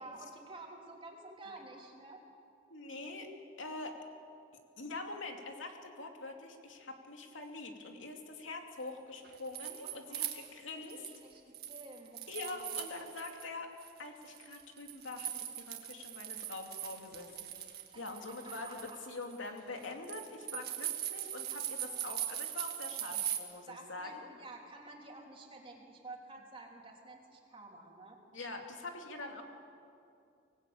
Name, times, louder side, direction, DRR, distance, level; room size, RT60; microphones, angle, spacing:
voice 1, 0.0-2.2 9.8-10.5 10.8-12.7 17.9-19.0 23.1-23.2 23.7-28.2 29.2-29.4, right 2 dB, 30° right, 0 dB, 3.3 m, -51 dB
voice 2, 2.7-3.3 3.6-4.0 4.8-11.1 12.3-13.7 14.0-17.5 18.0-24.3 28.3-29.4, left 3 dB, 90° left, 3 dB, 2.7 m, -44 dB
sound 1, 9.2-11.2 11.5-13.5 13.8-23.4, right 11 dB, 55° right, 2.0 m, -41 dB
24.5 x 19.0 x 8.6 m, 2.5 s
head